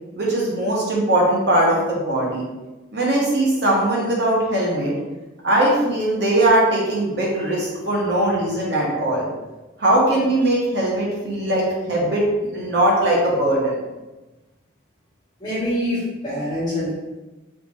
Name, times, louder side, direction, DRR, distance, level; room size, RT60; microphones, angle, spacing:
voice 1, 0.2-2.5 2.9-4.9 5.4-9.3 9.8-13.8, right 1 dB, 55° right, -4 dB, 0.9 m, -20 dB
voice 2, 15.4-16.9, left 1 dB, 20° left, -8 dB, 1.2 m, -25 dB
3.6 x 2.7 x 3.1 m, 1.1 s
head